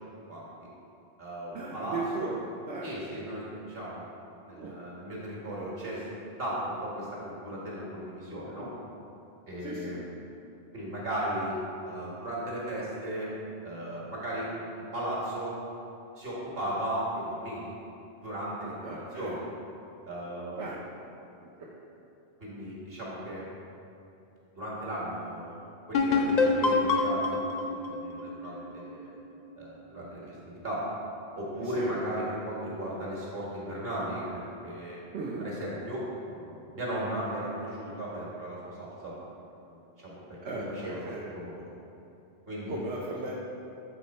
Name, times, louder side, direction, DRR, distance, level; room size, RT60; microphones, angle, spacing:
voice 1, 0.3-0.7 1.2-2.3 2.8-4.1 4.4-6.0 6.4-8.7 9.5-10.0 10.7-11.5 11.8-13.3 13.6-15.6 16.2-17.7 18.2-19.5 20.1-20.7 22.4-23.5 24.5-25.6 25.9-29.1 29.6-30.8 31.4-35.0 35.4-39.1 39.6-41.0 41.3-41.7 42.5-42.8, right 1 dB, 60° right, -6 dB, 1.8 m, -36 dB
voice 2, 1.5-2.9 4.4-4.8 9.6-10.0 18.8-19.4 20.6-20.8 21.3-21.8 30.2-30.3 31.6-32.0 35.1-35.5 40.4-41.3 42.7-43.3, right 3 dB, 80° right, -5 dB, 1.0 m, -37 dB
sound 1, 25.9-29.5, left 3 dB, 55° left, 0.5 m, -27 dB
8.0 x 4.3 x 4.2 m, 2.8 s
omnidirectional pair, 1.1 m